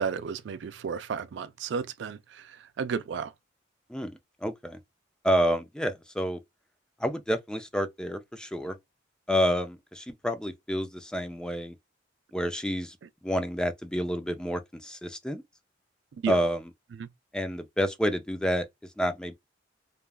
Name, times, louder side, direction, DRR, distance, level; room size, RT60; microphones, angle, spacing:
voice 1, 0.0-3.3 16.1-16.4 16.9-17.1, right 6 dB, 70° right, 0.4 m, -33 dB
voice 2, 3.9-4.8 5.2-6.4 7.0-8.8 9.3-11.8 12.3-13.0 13.2-15.4 16.3-16.6 17.3-18.7 19.0-19.3, equal, 5° left, 0.3 m, -29 dB
3.3 x 2.3 x 2.3 m
head